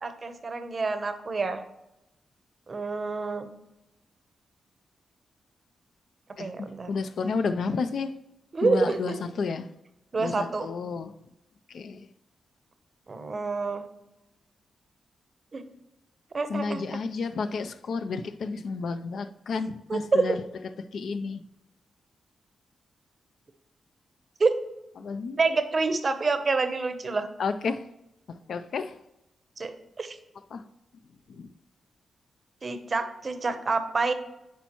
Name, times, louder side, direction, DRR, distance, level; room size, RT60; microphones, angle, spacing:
voice 1, 0.0-1.6 2.7-3.5 6.4-6.9 8.5-9.2 10.1-10.7 13.1-13.8 15.5-15.6 16.3-16.8 19.9-20.4 24.4-24.5 25.4-27.3 29.6-30.2 32.6-34.1, right 3 dB, 40° right, 0.7 m, -27 dB
voice 2, 6.4-8.1 8.6-9.7 10.2-11.1 11.7-12.1 16.5-20.4 20.9-21.4 25.0-25.4 27.4-27.8 28.5-28.9 30.5-30.6 31.3-31.5, left 4 dB, 70° left, 0.4 m, -31 dB
8.3 x 4.5 x 2.9 m
cardioid pair, 85°, 0 cm